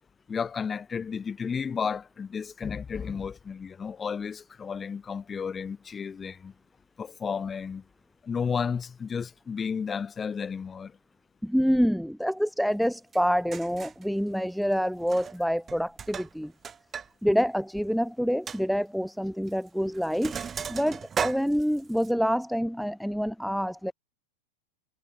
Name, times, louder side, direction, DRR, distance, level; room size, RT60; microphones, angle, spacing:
voice 1, 0.3-6.5 7.0-7.8 8.2-10.9, left 6 dB, 20° left, 7.7 m, -32 dB
voice 2, 11.4-16.5 17.2-20.4 20.7-23.9, equal, ahead, 1.5 m, -27 dB
Sink (filling or washing), 13.1-13.2 13.5-14.0 15.0-15.4 15.7-17.1 17.4-17.5 17.9-18.0 18.5-18.6 19.5-19.7 19.9-22.1, right 7 dB, 20° right, 1.6 m, -36 dB
figure-of-eight pair, 90°, 0 cm